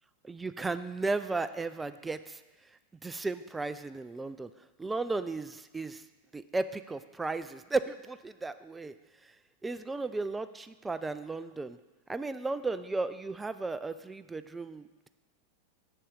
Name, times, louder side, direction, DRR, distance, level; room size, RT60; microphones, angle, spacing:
voice 1, 0.2-2.4 3.0-4.5 4.8-6.0 6.3-8.9 9.2-9.3 9.6-11.8 12.1-15.1, right 3 dB, 10° right, 13 dB, 0.3 m, -35 dB
6.9 x 6.6 x 3.7 m, 1.1 s
figure-of-eight pair, 90°, 0 cm